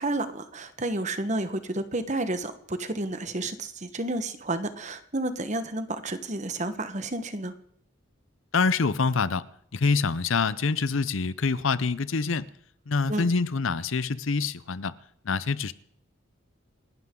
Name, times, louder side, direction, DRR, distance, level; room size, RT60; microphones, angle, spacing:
voice 1, 0.0-7.5 13.1-13.3, right 2 dB, 35° right, 1.3 m, -31 dB
voice 2, 8.5-9.4 9.7-12.5 12.9-14.9 15.3-15.7, left 4 dB, 70° left, 0.7 m, -25 dB
29.0 x 12.0 x 3.8 m
head